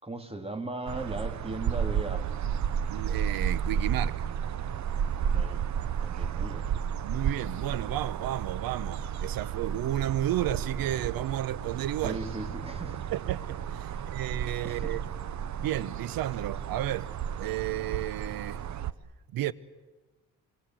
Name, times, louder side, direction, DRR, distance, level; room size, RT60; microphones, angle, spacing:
voice 1, 0.0-2.4 5.3-5.6 6.0-6.7 12.0-13.1 14.0-14.1 14.6-15.0, right 2 dB, 15° right, 2.6 m, -38 dB
sound 1, 0.9-18.9, right 8 dB, 50° right, 0.9 m, -32 dB
voice 2, 2.9-4.2 7.0-12.2 13.1-15.0 15.6-17.1 17.4-18.6 19.3-19.5, right 13 dB, 75° right, 1.0 m, -32 dB
26.0 x 23.0 x 7.7 m
cardioid pair, 95°, 36 cm